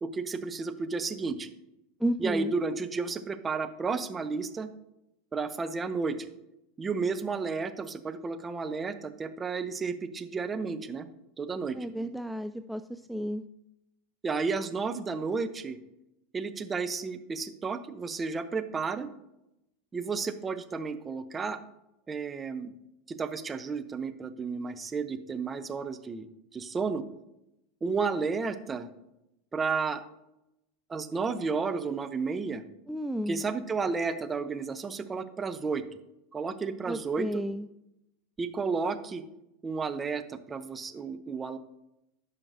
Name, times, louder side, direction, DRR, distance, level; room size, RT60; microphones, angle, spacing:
voice 1, 0.0-1.5 2.2-4.7 5.3-6.2 6.8-11.1 11.4-11.8 14.2-15.8 16.3-19.1 19.9-21.6 22.1-22.7 23.1-26.3 26.5-27.0 27.8-28.9 29.5-30.0 30.9-32.6 33.3-35.8 36.3-37.4 38.4-39.2 39.6-41.6, right 4 dB, 20° right, 9 dB, 0.8 m, -32 dB
voice 2, 2.0-2.5 11.7-13.4 32.9-33.4 36.9-37.7, equal, ahead, 8 dB, 0.3 m, -32 dB
13.5 x 5.7 x 2.7 m, 0.86 s
hypercardioid pair, 85°, 0 cm